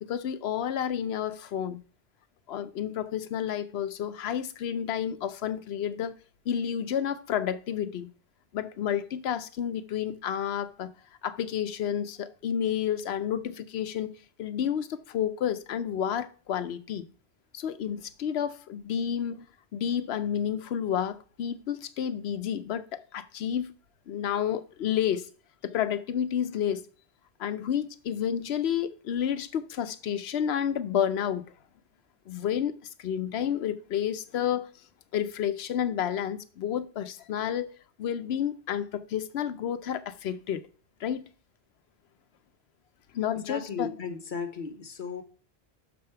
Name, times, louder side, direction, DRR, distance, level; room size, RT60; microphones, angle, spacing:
voice 1, 0.0-1.8 2.5-6.2 6.5-8.1 8.5-10.9 11.2-17.1 17.5-19.4 19.7-23.7 24.1-25.3 25.6-26.9 27.4-31.4 32.3-34.7 35.1-40.6 41.0-41.3 43.1-44.0, left 9 dB, 85° left, 0.9 m, -30 dB
voice 2, 43.5-45.2, left 5 dB, 55° left, 1.2 m, -35 dB
6.1 x 5.1 x 5.7 m
omnidirectional pair, 1.0 m